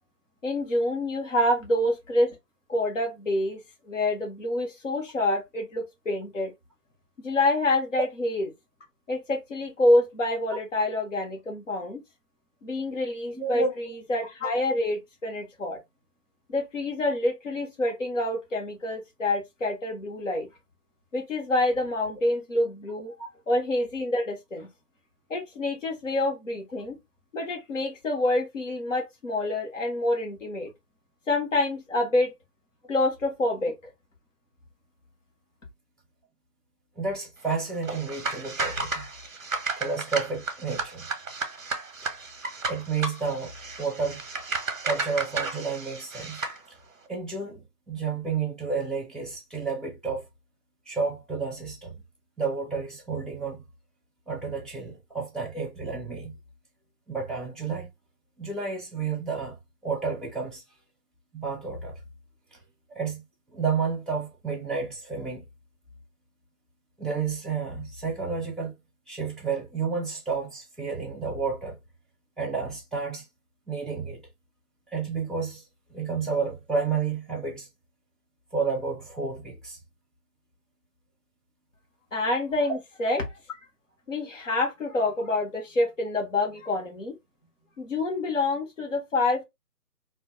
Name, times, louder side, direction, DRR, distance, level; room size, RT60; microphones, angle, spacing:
voice 1, 0.4-2.3 2.7-6.5 7.2-8.4 9.1-12.0 12.6-15.8 16.5-20.5 21.1-23.1 23.5-24.7 25.3-27.0 27.3-30.7 31.3-32.3 32.9-33.7 82.1-83.6 84.1-87.2 87.8-89.4, left 2 dB, 50° left, 0.8 m, -27 dB
voice 2, 13.3-13.9 37.0-39.0 39.8-41.1 42.7-44.2 44.8-46.4 47.1-50.2 50.9-51.9 52.4-53.6 54.3-56.3 57.1-57.9 58.4-59.6 59.8-60.6 61.3-61.9 62.5-62.6 62.9-63.2 63.5-65.4 67.0-68.7 69.1-71.8 72.4-73.2 73.7-74.2 74.9-75.6 75.9-77.7 78.5-79.8, right 5 dB, ahead, 0.5 m, -31 dB
sound 1, 37.8-46.6, right 4 dB, 60° right, 0.6 m, -33 dB
2.2 x 2.1 x 2.8 m
figure-of-eight pair, 175°, 47 cm